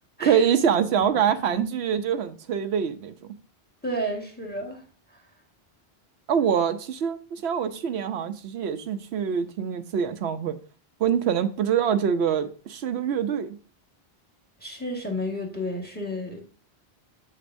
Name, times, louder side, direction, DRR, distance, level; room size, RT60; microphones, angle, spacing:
voice 1, 0.2-3.1 6.3-10.6 11.0-13.6, right 8 dB, 80° right, 0.9 m, -25 dB
voice 2, 3.8-4.8 14.6-16.5, equal, 10° left, 1.4 m, -31 dB
7.3 x 6.6 x 2.6 m
omnidirectional pair, 1.1 m